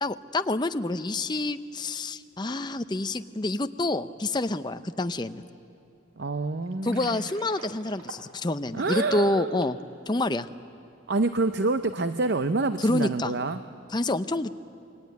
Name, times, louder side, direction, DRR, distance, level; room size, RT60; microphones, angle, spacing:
voice 1, 0.0-5.5 6.8-9.8 10.1-10.5 12.8-13.3 13.9-14.5, left 2 dB, 20° left, 10 dB, 0.6 m, -28 dB
voice 2, 6.2-7.3 8.7-9.7 11.1-13.6, right 3 dB, 50° right, 10 dB, 0.6 m, -27 dB
Water, 6.7-9.8, right 3 dB, 85° right, 1.9 m, -46 dB
28.0 x 21.5 x 9.4 m, 2.7 s
head